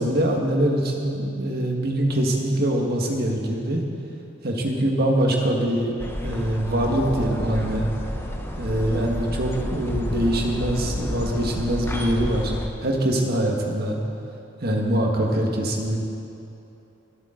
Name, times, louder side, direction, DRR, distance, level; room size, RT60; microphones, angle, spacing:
voice 1, 0.0-3.8 4.4-5.9 6.2-7.9 8.6-12.5 12.8-14.0 14.6-16.0, right 1 dB, 50° right, 1 dB, 1.7 m, -23 dB
sound 1, 6.0-12.7, equal, 10° left, 0.9 m, -30 dB
24.5 x 8.6 x 3.9 m, 2.8 s
head